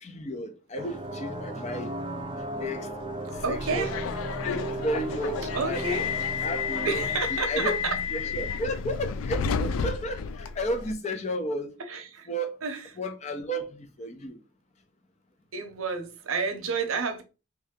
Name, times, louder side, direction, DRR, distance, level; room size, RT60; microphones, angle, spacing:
voice 1, 0.0-1.9 2.5-2.9 3.5-3.9 4.4-5.9 6.4-7.0 7.3-11.7 12.3-12.6 13.0-14.4, equal, 30° left, 0.5 m, -33 dB
sound 1, 0.8-7.2, right 2 dB, 25° right, 0.3 m, -36 dB
Subway metro underground, 3.3-10.9, left 6 dB, 85° left, 0.3 m, -31 dB
voice 2, 3.4-3.9 5.5-6.0 6.8-8.0 11.9-12.3 12.6-12.9 15.5-17.2, right 4 dB, 85° right, 0.7 m, -30 dB
2.9 x 2.7 x 3.5 m
head